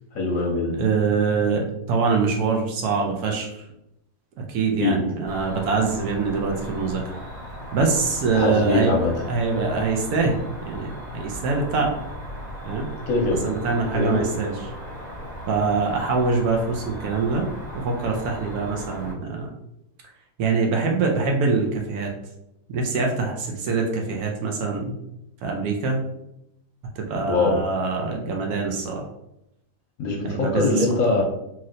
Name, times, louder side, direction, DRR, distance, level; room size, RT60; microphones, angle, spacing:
voice 1, 0.1-0.7 4.8-5.0 8.3-9.1 13.1-13.4 13.9-14.3 27.3-27.6 30.0-31.2, left 3 dB, 65° left, -1 dB, 0.9 m, -22 dB
voice 2, 0.8-3.6 4.5-7.0 7.7-9.0 9.3-11.9 12.6-12.9 13.4-14.7 15.5-17.4 17.7-19.5 20.4-22.1 22.7-24.9 25.4-26.0 27.0-29.1 30.2-31.2, right 4 dB, 70° right, 1 dB, 1.0 m, -24 dB
Cricket, 5.3-19.1, equal, 30° right, 0.9 m, -37 dB
3.0 x 2.9 x 2.5 m, 0.84 s
omnidirectional pair, 1.7 m